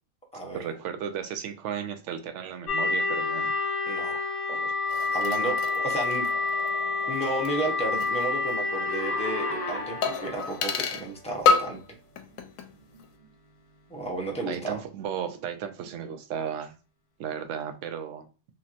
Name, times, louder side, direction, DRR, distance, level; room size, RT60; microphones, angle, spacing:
voice 1, 0.5-3.5 4.5-4.8 12.9-13.1 14.5-16.7 17.2-18.3, right 8 dB, 65° right, 0.8 m, -35 dB
sound 1, 2.7-10.7, left 3 dB, 45° left, 1.0 m, -28 dB
voice 2, 3.9-4.2 5.1-6.3 7.1-11.8 13.9-14.8, right 2 dB, 10° left, 0.4 m, -32 dB
sound 2, 4.9-8.2 8.5-8.6 10.0-11.1 11.5-11.9 12.2-12.7 13.0-13.1, left 5 dB, 75° left, 0.9 m, -29 dB
3.1 x 2.8 x 2.4 m
omnidirectional pair, 1.4 m